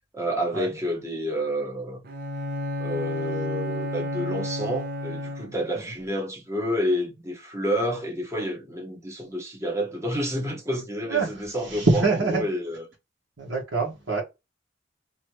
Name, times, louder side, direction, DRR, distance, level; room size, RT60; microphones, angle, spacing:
voice 1, 0.1-2.0 2.8-12.0 12.3-12.8, equal, 15° right, 1.0 m, -29 dB
Bowed string instrument, 2.0-5.8, left 1 dB, 55° right, 0.7 m, -31 dB
voice 2, 11.0-12.4 13.4-14.2, right 3 dB, 85° right, 1.3 m, -25 dB
3.0 x 2.7 x 3.0 m
head